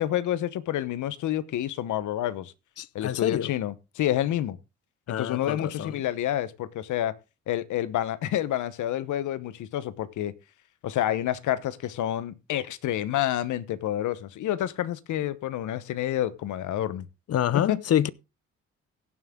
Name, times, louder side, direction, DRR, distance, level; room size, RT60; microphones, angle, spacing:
voice 1, 0.0-2.5 2.9-4.6 5.2-7.1 7.5-10.3 10.8-17.1 17.5-17.8, left 12 dB, 75° left, 1.1 m, -28 dB
voice 2, 2.8-3.5 5.1-6.0 17.3-18.1, left 10 dB, 55° left, 0.7 m, -26 dB
16.5 x 7.5 x 3.8 m
cardioid pair, 90°, 30 cm